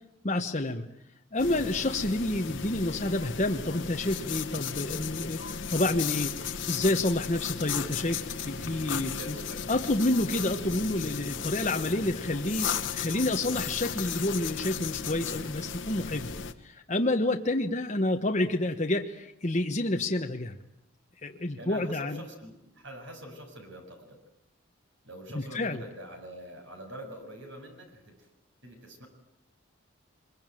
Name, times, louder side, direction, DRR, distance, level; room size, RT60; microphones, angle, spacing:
voice 1, 0.2-0.8 1.3-9.4 9.7-16.3 16.6-20.6 21.2-22.2 25.3-25.8, left 1 dB, 35° left, 3 dB, 1.2 m, -29 dB
sound 1, 1.4-16.5, left 7 dB, 65° left, 1.4 m, -35 dB
voice 2, 8.9-9.7 21.5-24.2 25.0-28.3 28.6-29.1, equal, 65° right, 4 dB, 6.8 m, -45 dB
24.0 x 22.5 x 9.2 m, 0.82 s
head